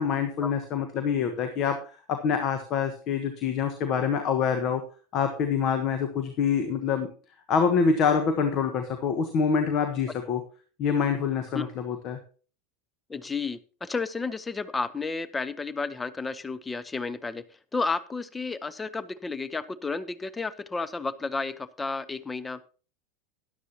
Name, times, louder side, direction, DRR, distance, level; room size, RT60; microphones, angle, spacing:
voice 1, 0.0-4.8 5.1-7.1 7.5-10.4 10.8-12.2, left 6 dB, 45° left, 7 dB, 1.3 m, -26 dB
voice 2, 13.1-17.4 17.7-22.6, left 4 dB, 15° left, 16 dB, 0.8 m, -32 dB
12.5 x 11.0 x 2.9 m, 0.38 s
figure-of-eight pair, 85°, 0 cm